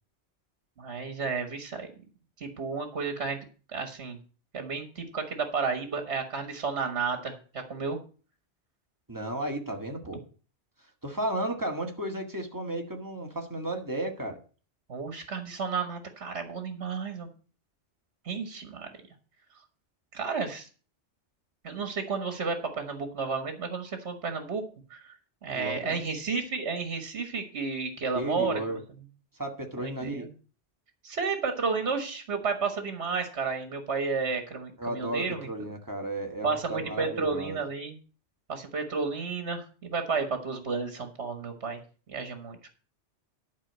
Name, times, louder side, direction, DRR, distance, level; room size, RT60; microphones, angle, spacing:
voice 1, 0.8-1.9 2.4-3.4 3.7-4.2 4.5-8.0 14.9-17.3 18.2-18.9 20.1-20.7 21.6-24.6 24.9-25.2 25.4-28.8 29.8-30.3 31.0-35.5 36.4-38.0 38.5-41.8 42.1-42.6, right 4 dB, 70° right, 7 dB, 1.7 m, -32 dB
voice 2, 9.1-10.2 11.0-14.4 25.5-26.1 28.1-28.8 29.4-30.3 34.8-37.6, right 1 dB, 15° right, 2 dB, 1.8 m, -34 dB
11.5 x 4.9 x 7.9 m, 0.39 s
omnidirectional pair, 1.2 m